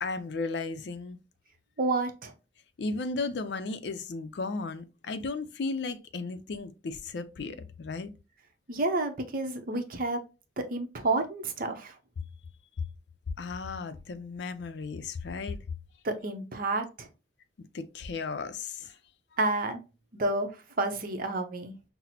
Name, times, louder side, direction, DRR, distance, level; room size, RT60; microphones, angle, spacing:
voice 1, 0.0-1.2 2.8-8.1 13.4-15.6 17.6-19.0, left 3 dB, 65° left, 0.5 m, -35 dB
voice 2, 1.8-2.3 8.7-10.2 10.6-12.0 16.0-17.1 19.4-19.8 20.1-20.5 20.8-21.7, right 2 dB, 50° right, 0.7 m, -30 dB
5.7 x 2.0 x 2.8 m
head